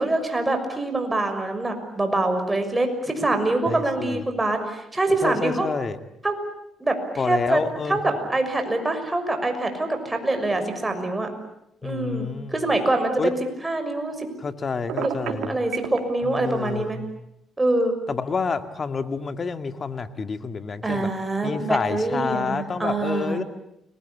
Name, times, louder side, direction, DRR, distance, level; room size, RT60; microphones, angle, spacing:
voice 1, 0.0-5.7 6.2-6.3 6.8-7.0 7.2-7.6 7.9-11.3 11.8-13.4 13.6-14.3 15.2-17.0 17.6-17.9 20.8-23.5, right 2 dB, 15° right, 6 dB, 6.3 m, -25 dB
voice 2, 3.7-4.2 5.2-6.0 7.2-8.2 11.8-12.6 13.2-13.3 14.4-15.6 16.2-17.1 18.1-21.1 21.4-23.4, left 5 dB, 40° left, 9 dB, 2.2 m, -28 dB
Telephone, 14.9-16.0, right 10 dB, 85° right, 3.1 m, -29 dB
30.0 x 21.0 x 8.6 m, 0.81 s
cardioid pair, 90°, 0 cm